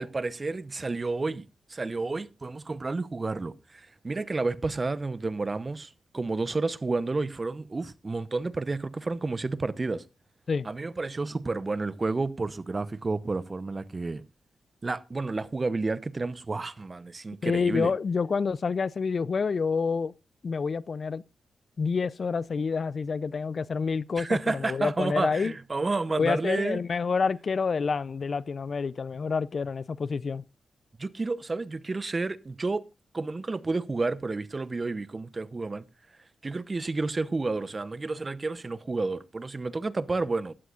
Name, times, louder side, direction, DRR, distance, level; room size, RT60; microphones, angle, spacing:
voice 1, 0.0-10.0 10.6-14.2 14.8-17.9 24.2-26.8 31.0-32.8 33.1-35.9 36.4-40.5, right 3 dB, 40° right, 0.8 m, -30 dB
voice 2, 17.4-20.1 20.4-21.2 21.8-25.5 26.2-30.4, left 5 dB, 55° left, 0.5 m, -28 dB
16.5 x 12.5 x 2.5 m
supercardioid pair, 40°, 0 cm